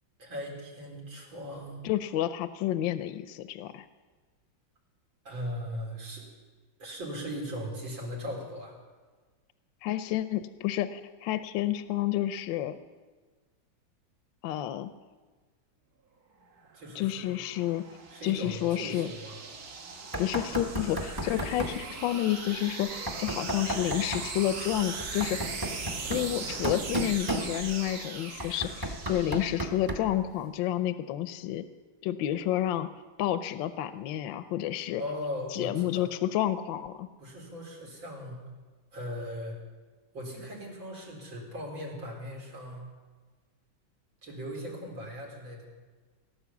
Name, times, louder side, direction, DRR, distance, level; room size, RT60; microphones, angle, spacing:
voice 1, 0.2-1.9 5.2-6.3 6.8-8.8 16.7-17.4 18.1-19.4 35.0-36.1 37.2-38.4 38.9-39.6 40.1-42.9 44.2-45.7, equal, 85° right, -2 dB, 4.6 m, -38 dB
voice 2, 1.8-3.9 9.8-12.8 14.4-14.9 16.9-17.8 18.2-19.1 20.2-25.4 26.1-31.6 32.0-32.9 33.2-35.0 35.5-37.1, left 13 dB, 80° left, 11 dB, 1.3 m, -30 dB
sound 1, 16.6-30.0, right 4 dB, 55° right, 1.7 m, -40 dB
Knock, 20.1-21.9 23.1-24.3 25.0-27.9 28.4-30.2, right 1 dB, 15° right, 0.9 m, -34 dB
18.5 x 10.0 x 7.1 m, 1.4 s
omnidirectional pair, 2.1 m